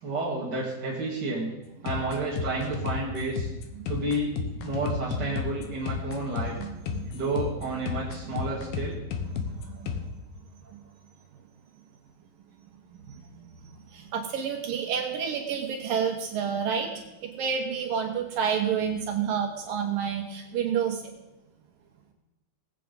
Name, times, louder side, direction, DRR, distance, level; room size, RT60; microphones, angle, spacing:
voice 1, 0.0-1.5 1.8-3.5 3.9-4.3 4.6-6.6 7.1-9.0, right 2 dB, 40° right, -4 dB, 1.7 m, -30 dB
sound 1, 1.9-10.1, left 6 dB, 75° left, 2.7 m, -33 dB
voice 2, 9.3-10.0 10.7-10.8 13.1-13.6 13.9-21.1, right 7 dB, 70° right, 2 dB, 2.7 m, -30 dB
19.5 x 8.4 x 5.3 m, 1.0 s
omnidirectional pair, 4.5 m